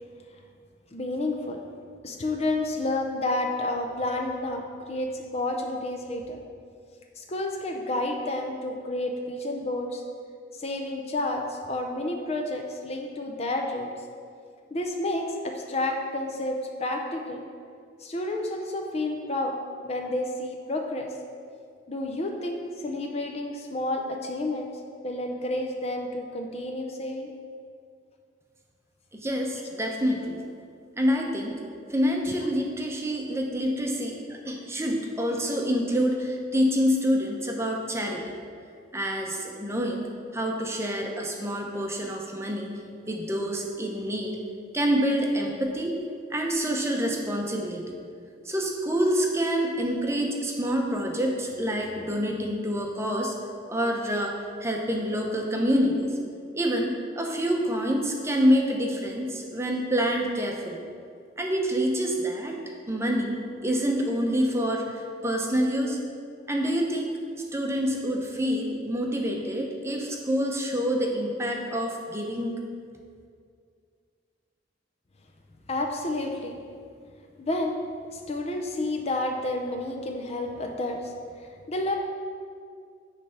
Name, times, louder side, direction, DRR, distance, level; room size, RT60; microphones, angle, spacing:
voice 1, 0.9-1.6 2.0-6.4 7.2-10.0 10.5-13.9 14.7-17.4 18.0-19.6 19.8-21.1 21.9-24.7 25.0-27.3 32.3-32.4 75.7-76.6 77.4-77.8 78.1-82.0, left 2 dB, 35° left, 3 dB, 0.5 m, -30 dB
voice 2, 29.1-30.4 31.0-31.6 31.9-38.3 38.9-40.0 40.3-42.7 43.1-44.4 44.7-46.0 46.3-48.0 48.4-53.4 53.7-54.3 54.6-56.2 56.5-60.8 61.4-62.6 62.9-66.0 66.5-67.2 67.5-72.5, equal, 15° right, 1 dB, 0.7 m, -27 dB
9.8 x 3.3 x 5.6 m, 2.2 s
head